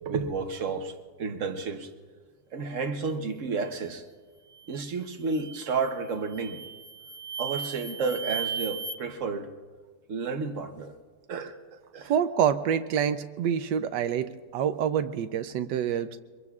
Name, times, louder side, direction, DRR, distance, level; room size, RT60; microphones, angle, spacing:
voice 1, 0.0-1.9 2.5-4.1 4.7-6.6 7.4-9.5 10.1-10.9 11.3-12.1, right 4 dB, 55° right, 7 dB, 1.2 m, -31 dB
sound 1, 4.5-4.8 5.3-5.8 6.3-9.0, right 6 dB, 10° left, 0.7 m, -36 dB
voice 2, 12.1-16.2, right 8 dB, 90° right, 10 dB, 1.3 m, -27 dB
24.0 x 22.5 x 2.4 m, 1.5 s
omnidirectional pair, 1.8 m